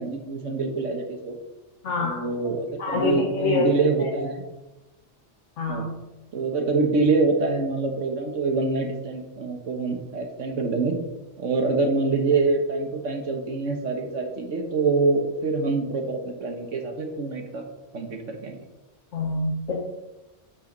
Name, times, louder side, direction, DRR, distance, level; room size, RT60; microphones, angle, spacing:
voice 1, 0.0-1.4 2.0-4.4 5.7-5.9 6.3-11.0 11.4-17.6 17.9-18.6, right 3 dB, 90° right, 4 dB, 1.7 m, -25 dB
voice 2, 1.8-2.2 2.8-3.7 4.0-4.1 5.6-5.8 19.1-19.8, left 2 dB, 80° left, -2 dB, 1.5 m, -25 dB
8.9 x 7.8 x 3.9 m, 1.0 s
omnidirectional pair, 1.2 m